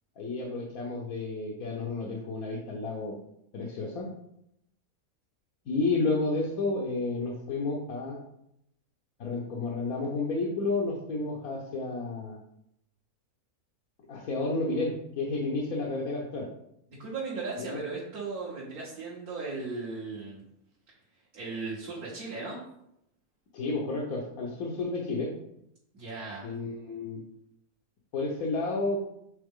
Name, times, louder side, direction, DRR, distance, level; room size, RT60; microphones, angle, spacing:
voice 1, 0.2-3.1 3.5-4.1 5.7-8.2 9.2-12.4 14.1-16.5 17.6-17.8 23.5-25.3 26.4-27.2 28.1-29.0, left 3 dB, 80° left, -2 dB, 1.4 m, -31 dB
voice 2, 17.0-20.4 21.3-22.6 25.9-26.5, right 3 dB, 90° right, -6 dB, 1.9 m, -37 dB
6.7 x 3.9 x 3.7 m, 0.78 s
omnidirectional pair, 1.5 m